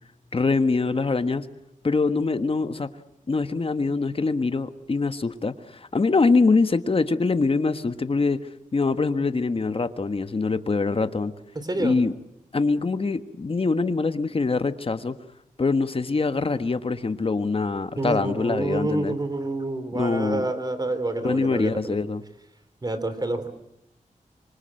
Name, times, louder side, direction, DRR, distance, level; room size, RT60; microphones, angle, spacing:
voice 1, 0.3-1.4 1.8-2.9 3.3-8.4 8.7-11.3 11.8-12.1 12.5-15.1 15.6-19.1 19.9-20.4 21.2-22.2, left 3 dB, 40° left, 10 dB, 1.4 m, -24 dB
voice 2, 11.6-12.0 18.0-22.0 22.8-23.5, right 2 dB, 30° right, 11 dB, 3.4 m, -28 dB
26.0 x 25.0 x 7.7 m, 0.80 s
wide cardioid pair, 100°, 14 cm